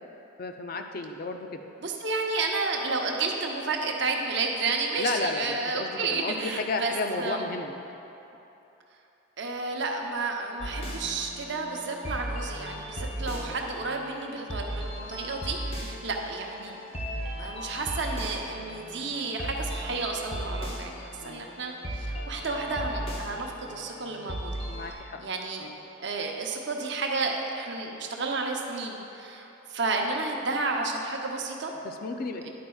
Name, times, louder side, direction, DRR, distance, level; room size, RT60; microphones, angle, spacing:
voice 1, 0.4-1.6 5.0-7.8 13.4-13.6 21.2-21.4 24.7-25.2 25.6-25.8 31.8-32.5, left 3 dB, 45° left, 5 dB, 0.4 m, -33 dB
voice 2, 1.8-7.4 9.4-16.8 17.4-24.5 24.8-25.7 26.0-31.7 32.4-32.5, right 3 dB, 55° right, 1 dB, 0.7 m, -31 dB
sound 1, 10.6-24.9, equal, 30° left, 0.9 m, -37 dB
10.0 x 8.6 x 2.3 m, 3.0 s
head